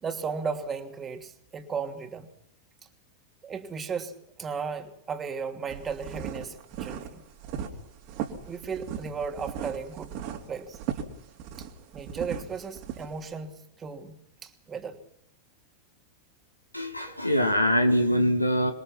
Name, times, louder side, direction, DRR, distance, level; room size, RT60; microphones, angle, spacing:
voice 1, 0.0-2.3 3.4-7.2 8.5-10.1 10.5-10.8 11.6-11.7 11.9-15.0, right 5 dB, 20° right, 5 dB, 2.8 m, -35 dB
sound 1, 5.7-13.3, right 9 dB, 45° right, 3.2 m, -37 dB
voice 2, 16.7-18.7, equal, 85° left, 6 dB, 2.4 m, -23 dB
27.0 x 21.5 x 6.0 m, 0.72 s
figure-of-eight pair, 90°, 0 cm